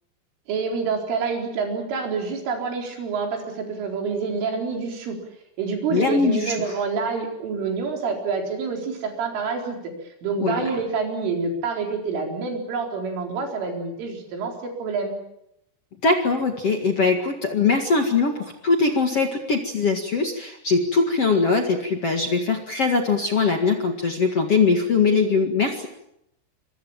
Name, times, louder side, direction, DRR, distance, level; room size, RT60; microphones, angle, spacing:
voice 1, 0.5-5.2 5.6-9.9 10.2-15.2, right 4 dB, 70° right, 2 dB, 6.8 m, -27 dB
voice 2, 5.9-6.7 10.4-10.6 16.0-25.9, left 4 dB, 55° left, 4 dB, 1.7 m, -21 dB
27.0 x 24.0 x 7.4 m, 0.79 s
omnidirectional pair, 5.8 m